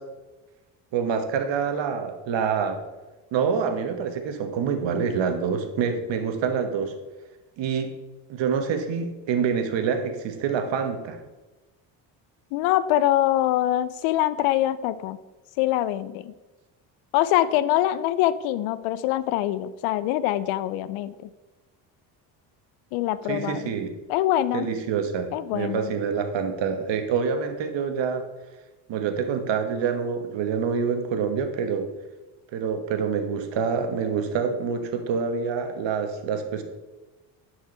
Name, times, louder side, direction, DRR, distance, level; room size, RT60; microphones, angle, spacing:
voice 1, 0.9-2.8 3.3-6.9 7.6-7.9 8.3-11.2 23.3-23.9 24.5-28.2 28.9-31.9 32.5-36.6, right 6 dB, 60° right, 7 dB, 1.3 m, -26 dB
voice 2, 12.5-15.2 15.6-16.3 17.1-21.3 22.9-23.7 24.1-24.7 25.3-25.9, left 13 dB, 75° left, 16 dB, 0.6 m, -24 dB
10.5 x 4.8 x 4.4 m, 1.2 s
supercardioid pair, 70°, 49 cm